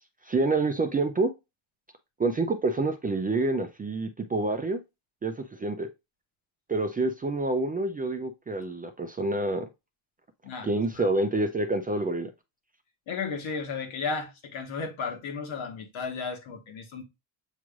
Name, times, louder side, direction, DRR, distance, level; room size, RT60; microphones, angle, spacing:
voice 1, 0.2-1.3 2.2-4.8 5.2-5.9 6.7-9.7 10.6-12.3, right 2 dB, 20° right, 0.4 m, -27 dB
voice 2, 10.4-11.0 13.1-17.0, left 5 dB, 75° left, 1.4 m, -34 dB
7.3 x 3.1 x 2.4 m
cardioid pair, 105°, 49 cm